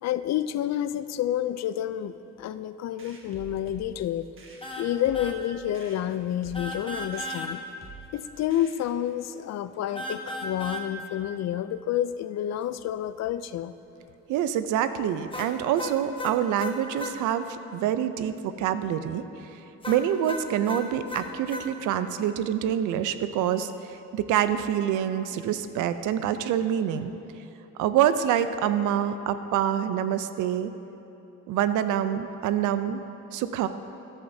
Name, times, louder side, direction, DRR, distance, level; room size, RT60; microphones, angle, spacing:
voice 1, 0.0-4.3 4.8-7.6 8.1-13.7, left 11 dB, 60° left, 13 dB, 0.4 m, -29 dB
sound 1, 3.0-9.2, right 4 dB, 40° right, 1.4 m, -49 dB
sound 2, 4.6-4.9 5.1-5.4 6.5-7.5 10.0-10.9 15.3-17.2 19.8-21.7, left 1 dB, 15° left, 1.1 m, -35 dB
voice 2, 14.3-19.6 19.9-27.1 27.8-30.7 31.5-33.0 33.3-33.7, right 10 dB, 90° right, 11 dB, 0.5 m, -26 dB
13.5 x 10.5 x 2.7 m, 2.9 s
cardioid pair, 90°, 30 cm